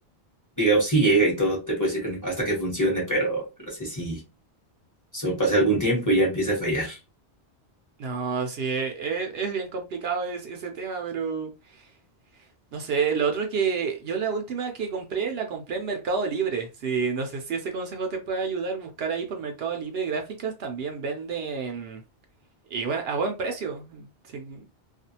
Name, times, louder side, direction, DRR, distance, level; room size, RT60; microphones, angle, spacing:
voice 1, 0.6-3.4 3.7-4.2 5.1-7.0, right 2 dB, 15° left, 1.1 m, -23 dB
voice 2, 8.0-11.5 12.7-22.0 22.7-24.1 24.3-24.6, right 5 dB, 70° right, 0.8 m, -29 dB
2.5 x 2.3 x 2.7 m
omnidirectional pair, 1.1 m